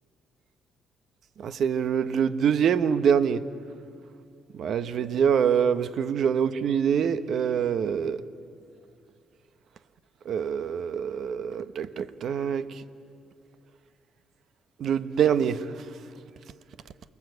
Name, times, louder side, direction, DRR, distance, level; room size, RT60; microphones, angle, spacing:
voice 1, 1.4-3.4 4.5-8.2 10.2-12.7 14.8-15.8, right 7 dB, 65° right, 1.0 m, -25 dB
28.5 x 21.5 x 8.0 m
cardioid pair, 90°, 0 cm